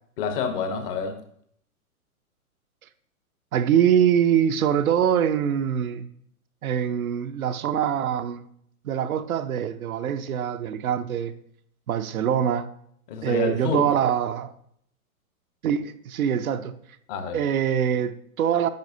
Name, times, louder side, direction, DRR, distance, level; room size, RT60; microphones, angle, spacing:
voice 1, 0.2-1.2 13.1-13.9 17.1-17.4, left 6 dB, 40° left, 0.9 m, -28 dB
voice 2, 3.5-6.1 6.6-8.5 8.8-11.3 11.9-12.7 13.2-14.5 15.6-16.7 17.3-18.7, right 9 dB, 75° right, 0.6 m, -23 dB
9.4 x 4.5 x 2.7 m
hypercardioid pair, 120°, 44 cm